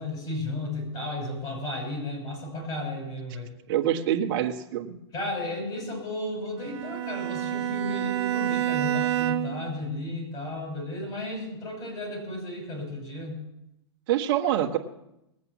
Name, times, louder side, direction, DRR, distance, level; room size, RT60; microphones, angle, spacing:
voice 1, 0.0-3.5 5.1-13.4, left 1 dB, 30° left, 0 dB, 5.9 m, -34 dB
voice 2, 3.7-4.9 14.1-14.8, right 11 dB, 50° right, 2 dB, 1.6 m, -25 dB
Bowed string instrument, 6.6-9.7, right 13 dB, 70° right, 2.0 m, -28 dB
20.0 x 8.3 x 7.2 m, 0.87 s
hypercardioid pair, 140°, 14 cm